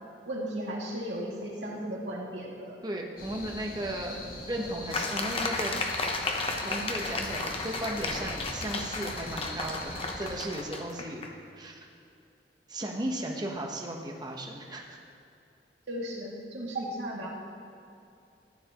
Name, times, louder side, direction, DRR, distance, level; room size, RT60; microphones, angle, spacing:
voice 1, 0.2-2.8 15.9-17.3, right 1 dB, 75° right, -4 dB, 2.4 m, -35 dB
voice 2, 2.8-4.2 4.5-5.7 6.6-11.2 11.6-11.9 12.7-15.0, right 1 dB, 25° right, 0 dB, 1.1 m, -35 dB
sound 1, 3.2-10.4, left 1 dB, 55° left, 2.0 m, -42 dB
sound 2, 4.9-11.3, left 3 dB, 35° left, 0.9 m, -33 dB
14.5 x 10.0 x 3.0 m, 2.7 s
head